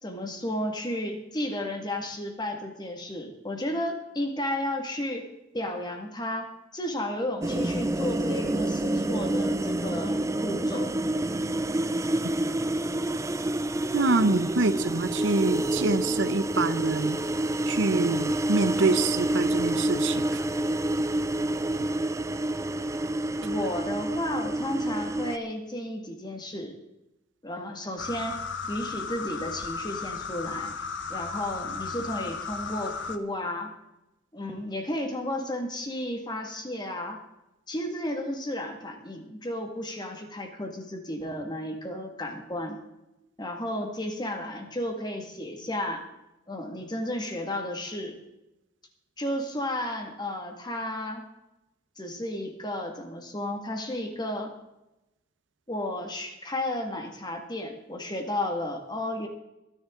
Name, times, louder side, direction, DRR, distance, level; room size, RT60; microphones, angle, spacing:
voice 1, 0.0-5.2 5.5-10.9 23.4-26.7 27.4-28.4 28.7-30.7 31.1-33.7 34.3-37.2 37.7-42.8 43.4-46.0 46.5-48.1 49.2-51.2 52.0-54.5 55.7-59.3, left 1 dB, 25° left, 4 dB, 2.1 m, -33 dB
sound 1, 7.4-25.4, right 1 dB, 15° right, 0.5 m, -28 dB
voice 2, 13.9-17.2 17.7-20.4, right 3 dB, 90° right, 12 dB, 0.9 m, -26 dB
sound 2, 28.0-33.2, left 5 dB, 80° left, 1.1 m, -35 dB
22.0 x 10.5 x 3.9 m, 0.94 s
head